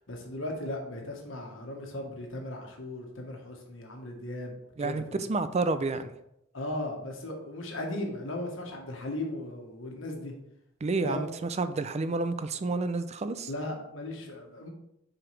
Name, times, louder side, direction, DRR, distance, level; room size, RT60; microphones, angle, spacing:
voice 1, 0.1-5.3 6.5-10.3 11.0-11.3 13.5-14.7, left 1 dB, 75° left, 1 dB, 1.4 m, -37 dB
voice 2, 4.8-6.1 10.8-13.5, right 3 dB, 35° right, 11 dB, 0.4 m, -30 dB
7.2 x 4.9 x 3.3 m, 0.82 s
head